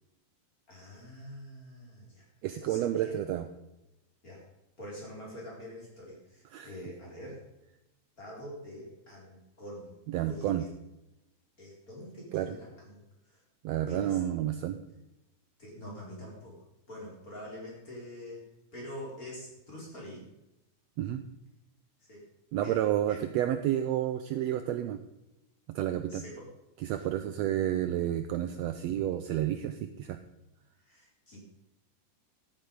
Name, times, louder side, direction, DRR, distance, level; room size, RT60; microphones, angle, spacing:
voice 1, 0.7-2.2 2.6-3.2 4.2-4.4 4.8-7.4 8.2-10.0 10.2-10.7 11.6-13.0 13.2-13.4 13.9-14.2 15.6-18.4 18.7-20.3 22.1-22.2 22.5-23.2 26.1-26.5 30.8-31.4, equal, 25° left, -3 dB, 4.6 m, -45 dB
voice 2, 2.4-3.5 6.5-6.7 10.1-10.6 12.3-12.6 13.6-14.8 21.0-21.2 22.5-25.0 25.7-26.2 26.8-30.2, right 12 dB, 80° right, 9 dB, 1.6 m, -30 dB
13.5 x 9.0 x 5.3 m, 0.91 s
omnidirectional pair, 3.6 m